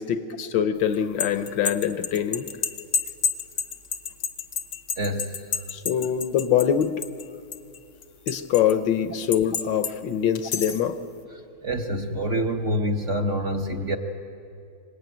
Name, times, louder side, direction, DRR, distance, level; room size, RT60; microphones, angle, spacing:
voice 1, 0.0-2.5 5.7-6.9 8.3-11.0, left 9 dB, 65° left, 10 dB, 1.4 m, -24 dB
sound 1, 0.9-7.2 7.5-8.7 9.3-9.9 10.3-10.9, left 6 dB, 50° left, 1.0 m, -29 dB
voice 2, 5.0-5.4 11.6-14.0, equal, 45° right, 3 dB, 1.2 m, -26 dB
24.5 x 20.0 x 9.3 m, 2.5 s
omnidirectional pair, 2.3 m